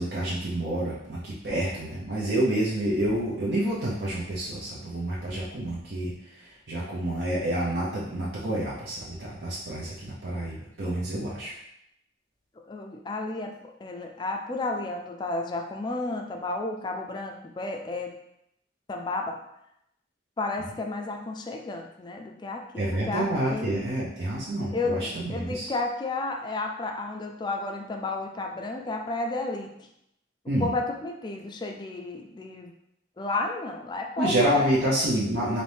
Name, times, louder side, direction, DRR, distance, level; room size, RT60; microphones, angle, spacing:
voice 1, 0.0-11.5 22.8-25.7 30.5-30.7 34.2-35.6, right 1 dB, 60° right, -6 dB, 0.7 m, -28 dB
voice 2, 12.7-18.1 18.9-19.4 20.4-23.8 24.7-29.7 30.4-32.7 33.2-34.7, left 2 dB, 25° left, 3 dB, 0.3 m, -32 dB
4.2 x 2.6 x 3.4 m, 0.80 s
head